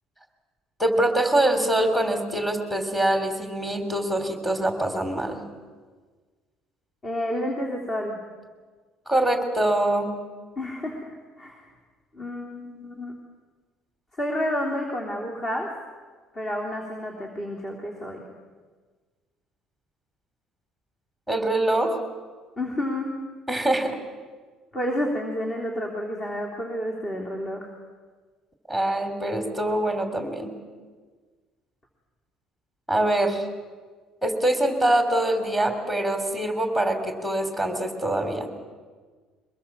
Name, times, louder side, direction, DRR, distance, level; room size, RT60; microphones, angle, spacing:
voice 1, 0.8-5.4 9.1-10.1 21.3-22.0 23.5-24.0 28.7-30.5 32.9-33.5 34.2-38.5, right 1 dB, 5° left, 5 dB, 3.3 m, -24 dB
voice 2, 7.0-8.2 10.6-11.6 12.1-13.1 14.2-15.7 16.3-18.2 22.6-23.1 24.7-27.7, left 1 dB, 30° left, 0 dB, 3.4 m, -30 dB
23.5 x 20.5 x 7.4 m, 1.5 s
cardioid pair, 130°, 0 cm